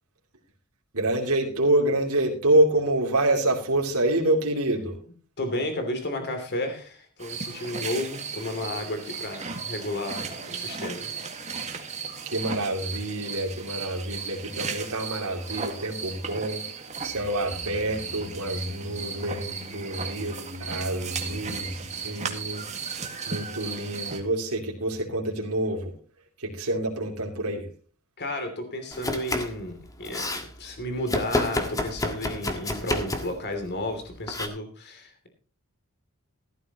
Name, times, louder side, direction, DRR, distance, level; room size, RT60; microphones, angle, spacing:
voice 1, 0.9-5.0 12.2-16.6 17.0-20.3 20.6-22.7 23.3-25.9 26.4-27.7, right 1 dB, 85° right, -1 dB, 2.8 m, -27 dB
voice 2, 5.4-11.1 28.2-35.3, left 1 dB, 50° left, 6 dB, 2.8 m, -32 dB
sound 1, 7.2-24.2, right 5 dB, 30° right, 1.9 m, -36 dB
sound 2, 17.0-23.4 23.6-23.7, left 2 dB, 80° left, 4.6 m, -43 dB
Domestic sounds home sounds, 28.9-29.6 29.9-30.5 31.1-33.4 34.3-34.5, left 1 dB, 15° left, 1.7 m, -29 dB
15.0 x 13.0 x 3.0 m, 0.38 s
head